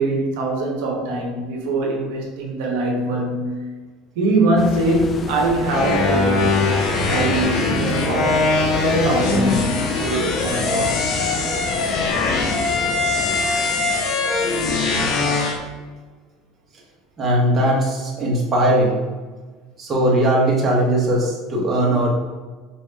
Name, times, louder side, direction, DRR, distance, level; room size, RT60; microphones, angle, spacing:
voice 1, 0.0-3.6 4.2-6.6 7.1-8.5 8.8-9.7 10.0-11.0, right 2 dB, 80° right, -1 dB, 0.9 m, -22 dB
sound 1, 4.6-13.5, left 4 dB, 25° left, 0.3 m, -31 dB
sound 2, 5.7-15.6, left 3 dB, 50° left, 0.7 m, -21 dB
voice 2, 17.2-19.0 19.8-22.1, right 1 dB, 25° right, -3 dB, 1.1 m, -19 dB
4.9 x 2.8 x 3.3 m, 1.4 s
supercardioid pair, 130°, 0 cm